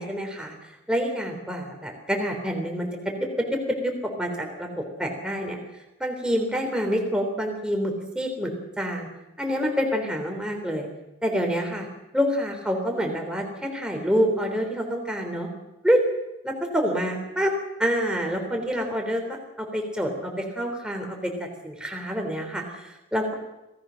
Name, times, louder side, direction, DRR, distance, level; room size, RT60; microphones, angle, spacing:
voice 1, 0.0-5.6 6.0-9.1 9.4-10.9 11.2-11.9 12.1-15.5 15.8-16.0 16.4-17.5 17.8-23.3, equal, 5° right, 2 dB, 3.6 m, -27 dB
26.5 x 18.0 x 6.5 m, 0.95 s
head